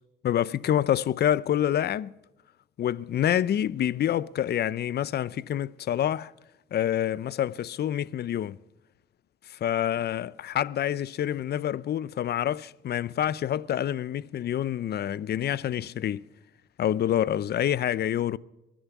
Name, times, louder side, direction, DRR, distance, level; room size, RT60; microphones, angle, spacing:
voice 1, 0.2-2.1 2.8-6.3 6.7-8.6 9.5-16.2 16.8-18.4, left 10 dB, 55° left, 0.6 m, -27 dB
23.0 x 10.5 x 6.0 m
cardioid pair, 90°, 20 cm